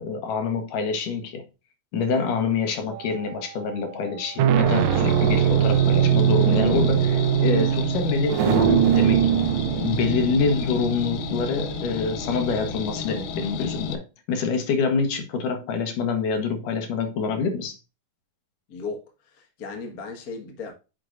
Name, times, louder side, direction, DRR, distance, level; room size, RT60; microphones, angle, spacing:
voice 1, 0.0-1.4 1.9-9.3 9.8-17.8, left 5 dB, 65° left, 2.6 m, -26 dB
sound 1, 2.9-3.4 4.1-12.8, right 9 dB, 75° right, 2.3 m, -22 dB
sound 2, 4.7-14.0, left 6 dB, 85° left, 3.0 m, -33 dB
voice 2, 18.7-20.7, left 4 dB, 40° left, 1.2 m, -36 dB
9.4 x 6.4 x 2.6 m
omnidirectional pair, 4.2 m